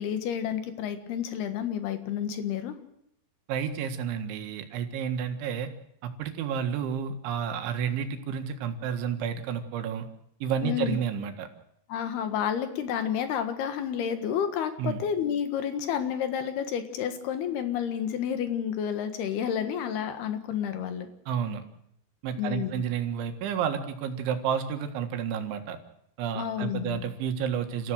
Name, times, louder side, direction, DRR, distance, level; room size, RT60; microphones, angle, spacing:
voice 1, 0.0-2.8 10.6-11.0 11.9-21.1 22.4-22.7 26.4-27.0, left 8 dB, 65° left, 8 dB, 3.4 m, -30 dB
voice 2, 3.5-5.7 6.0-10.1 10.4-11.5 14.8-15.0 21.3-21.7 22.2-25.8 26.2-27.9, right 7 dB, 80° right, 6 dB, 4.1 m, -31 dB
28.0 x 15.0 x 6.5 m, 0.74 s
omnidirectional pair, 5.3 m